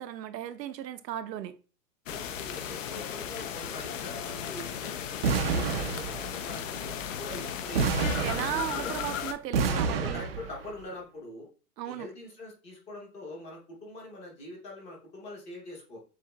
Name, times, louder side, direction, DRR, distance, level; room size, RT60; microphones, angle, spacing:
voice 1, 0.0-1.6 8.2-10.2 11.8-12.1, right 11 dB, 80° right, 0.7 m, -36 dB
sound 1, 2.1-9.3, left 8 dB, 50° left, 0.6 m, -36 dB
voice 2, 2.1-6.9 7.2-9.0 9.6-11.5 11.8-16.0, left 1 dB, 15° left, 0.7 m, -43 dB
sound 2, 5.2-6.5 7.7-9.0 9.5-10.7, right 5 dB, 40° right, 0.4 m, -29 dB
7.3 x 2.8 x 2.2 m
hypercardioid pair, 160°, 49 cm